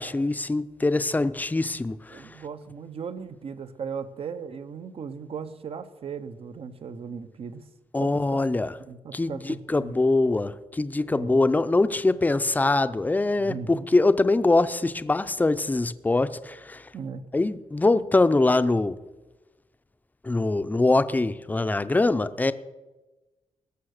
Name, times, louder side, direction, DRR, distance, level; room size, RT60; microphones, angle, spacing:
voice 1, 0.0-2.2 7.9-8.7 9.1-16.9 17.3-18.9 20.2-22.5, left 2 dB, 15° left, 13 dB, 0.6 m, -23 dB
voice 2, 2.1-7.6 8.0-8.4 8.9-9.9 11.1-11.5 13.4-13.9 16.9-17.3, right 6 dB, 60° right, 11 dB, 0.9 m, -37 dB
19.5 x 6.8 x 6.6 m, 1.1 s
wide cardioid pair, 120°, 11 cm